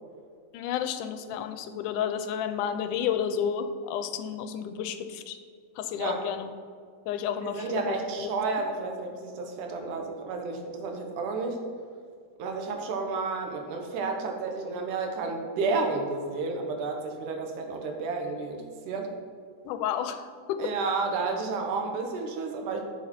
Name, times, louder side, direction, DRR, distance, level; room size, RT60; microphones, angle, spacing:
voice 1, 0.5-5.4 5.8-6.5 7.1-8.3 19.7-20.7, left 8 dB, 85° left, 9 dB, 2.1 m, -31 dB
voice 2, 7.4-11.6 12.4-19.1 20.6-22.8, right 4 dB, 80° right, 3 dB, 2.6 m, -31 dB
10.5 x 7.1 x 4.3 m, 2.2 s
omnidirectional pair, 3.6 m